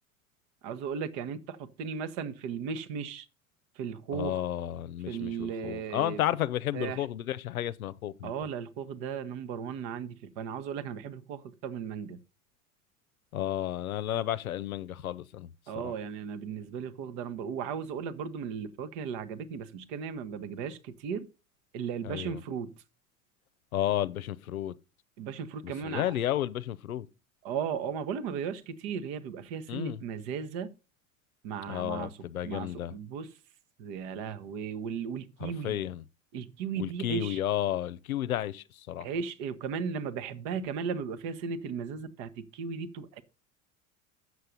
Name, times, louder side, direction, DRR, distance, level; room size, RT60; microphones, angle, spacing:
voice 1, 0.6-3.3 3.8-4.4 5.1-6.2 6.7-7.1 8.2-12.2 15.7-21.3 21.7-22.7 25.2-26.1 27.4-30.7 31.4-32.2 32.4-33.3 33.8-35.8 36.3-37.4 39.0-43.2, right 6 dB, 60° right, 1.2 m, -36 dB
voice 2, 4.1-8.3 13.3-15.9 22.0-22.4 23.7-24.7 25.6-27.1 29.7-30.0 31.7-32.9 35.4-36.0 36.8-39.1, left 12 dB, 85° left, 0.6 m, -32 dB
8.0 x 6.7 x 5.2 m
hypercardioid pair, 75°, 41 cm